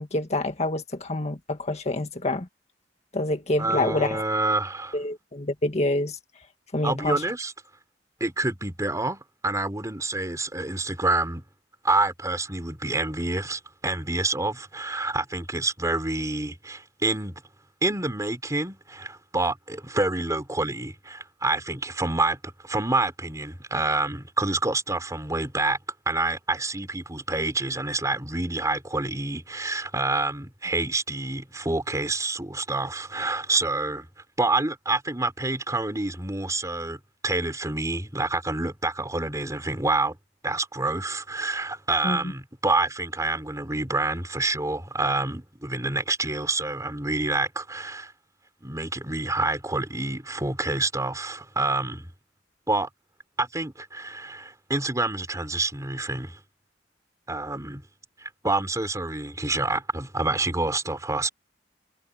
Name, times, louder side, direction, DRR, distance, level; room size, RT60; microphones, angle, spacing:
voice 1, 0.0-2.5 3.1-4.2 4.9-6.2 6.7-7.2 42.0-42.2, left 2 dB, 40° left, 1.7 m, -27 dB
voice 2, 3.6-5.0 6.8-7.5 8.2-11.4 11.8-17.4 17.8-25.8 26.1-34.1 34.4-40.2 40.4-48.1 48.6-52.1 52.7-52.9 53.4-56.4 57.3-57.8 58.2-61.3, right 2 dB, 20° right, 4.3 m, -27 dB
head